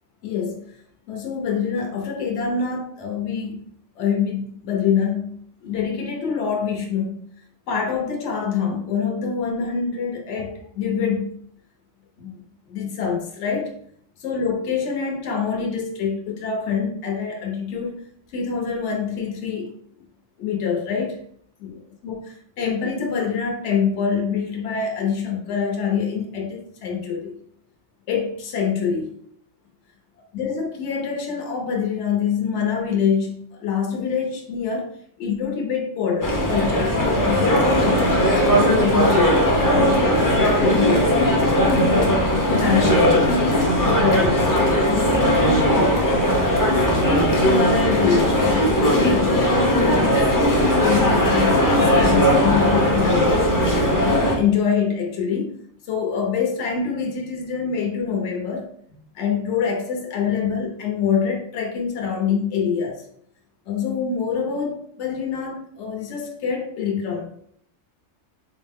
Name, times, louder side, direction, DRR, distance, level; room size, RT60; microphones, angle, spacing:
voice 1, 0.2-0.7 1.1-3.6 4.0-7.2 7.7-11.3 12.2-12.3 12.7-13.8 14.2-17.9 18.3-19.7 20.4-21.2 21.6-21.8 22.0-22.2 22.6-27.4 28.1-29.1 30.3-34.9 35.2-39.4 40.0-43.0 43.3-44.5 44.8-45.9 46.6-53.6 54.0-55.6 55.9-58.7 59.1-63.0 63.7-67.3, left 6 dB, 65° left, 0 dB, 1.1 m, -25 dB
sound 1, 36.2-54.4, equal, 25° left, 0.4 m, -18 dB
4.4 x 2.1 x 3.5 m, 0.63 s
omnidirectional pair, 1.3 m